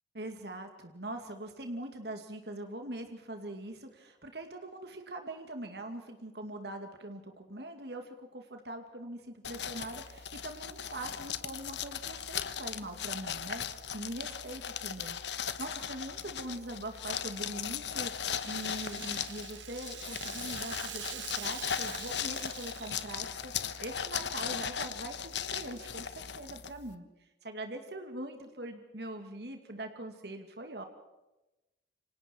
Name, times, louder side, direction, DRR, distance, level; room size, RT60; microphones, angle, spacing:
voice 1, 0.1-30.8, right 1 dB, 65° right, 5 dB, 2.4 m, -42 dB
sound 1, 9.4-26.9, left 8 dB, 75° left, 1.2 m, -38 dB
Rattle (instrument), 17.3-23.5, right 11 dB, 85° right, 1.7 m, -45 dB
28.5 x 25.0 x 4.6 m, 1.0 s
head